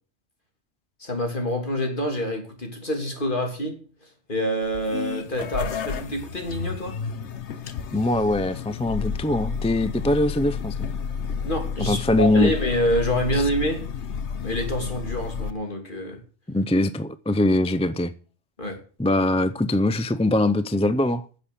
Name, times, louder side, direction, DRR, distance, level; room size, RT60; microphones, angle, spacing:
voice 1, 1.0-3.8 4.3-7.0 11.4-13.8 14.4-16.2 18.6-18.8, equal, 45° left, 3.1 m, -26 dB
sound 1, 4.6-15.5, left 6 dB, 75° left, 1.3 m, -31 dB
voice 2, 7.9-10.7 11.9-12.5 16.5-18.1 19.0-21.2, left 1 dB, 10° left, 0.4 m, -22 dB
10.0 x 7.4 x 8.4 m
omnidirectional pair, 1.2 m